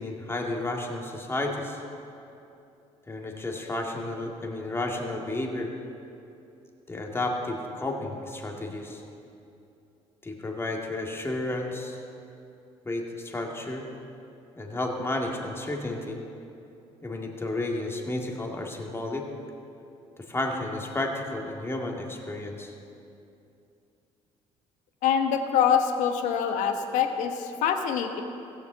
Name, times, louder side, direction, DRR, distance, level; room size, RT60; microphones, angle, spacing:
voice 1, 0.0-1.8 3.1-5.7 6.9-9.0 10.2-12.0 12.9-13.8 14.6-16.2 17.0-19.3 20.2-22.7, left 2 dB, 20° left, 1 dB, 2.0 m, -32 dB
voice 2, 25.0-28.2, left 8 dB, 75° left, 6 dB, 1.1 m, -25 dB
15.0 x 7.0 x 7.3 m, 2.7 s
supercardioid pair, 80°, 13 cm